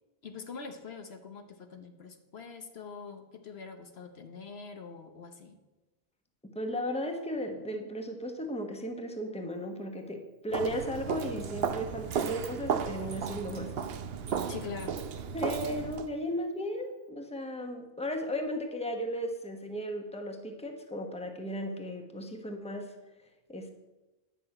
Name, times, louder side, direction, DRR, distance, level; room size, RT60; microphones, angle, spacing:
voice 1, 0.2-5.6 14.5-15.0, left 5 dB, 75° left, 6 dB, 1.3 m, -44 dB
voice 2, 6.4-13.7 15.3-23.0 23.5-23.7, equal, 5° left, 4 dB, 1.1 m, -35 dB
Walk footsteps, 10.5-16.1, right 7 dB, 70° right, 0.9 m, -34 dB
11.0 x 5.9 x 8.7 m, 1.1 s
omnidirectional pair, 1.1 m